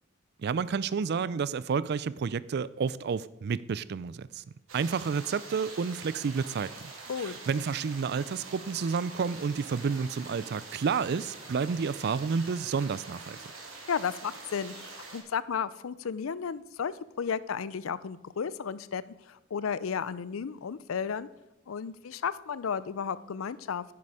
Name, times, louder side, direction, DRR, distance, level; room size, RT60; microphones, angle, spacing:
voice 1, 0.4-4.4 4.7-6.9 7.2-13.5, right 5 dB, 55° right, 0.4 m, -30 dB
sound 1, 4.7-15.2, right 3 dB, 80° right, 2.6 m, -45 dB
voice 2, 13.9-21.3 21.7-23.8, left 6 dB, 90° left, 0.5 m, -33 dB
9.8 x 9.4 x 4.8 m
head